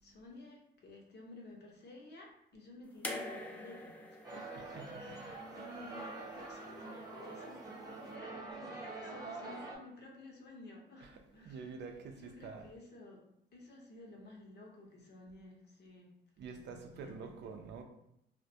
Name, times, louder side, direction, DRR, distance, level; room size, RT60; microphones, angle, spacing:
voice 1, 0.0-4.7 4.9-11.7 12.2-13.2 13.5-16.1 16.4-17.4, left 2 dB, 55° left, 0.7 m, -54 dB
sound 1, 3.0-6.2 7.4-7.5, left 1 dB, 5° left, 0.3 m, -45 dB
sound 2, 4.2-9.8, right 3 dB, 15° right, 0.7 m, -45 dB
voice 2, 11.0-12.7 16.4-17.8, right 5 dB, 60° right, 0.4 m, -47 dB
2.2 x 2.1 x 2.7 m
cardioid pair, 90°, 20 cm